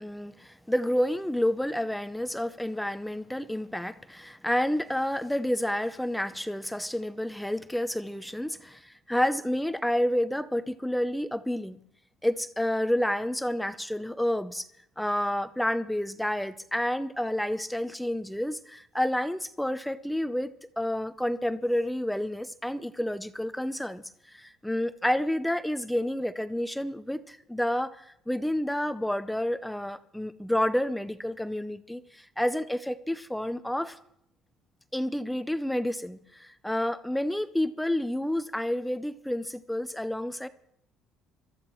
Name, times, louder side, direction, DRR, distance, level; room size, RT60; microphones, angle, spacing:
voice 1, 0.0-11.8 12.2-14.7 15.0-34.0 34.9-40.5, left 1 dB, 5° left, 12 dB, 0.5 m, -29 dB
25.5 x 13.5 x 3.0 m, 0.76 s
cardioid pair, 150°, 0 cm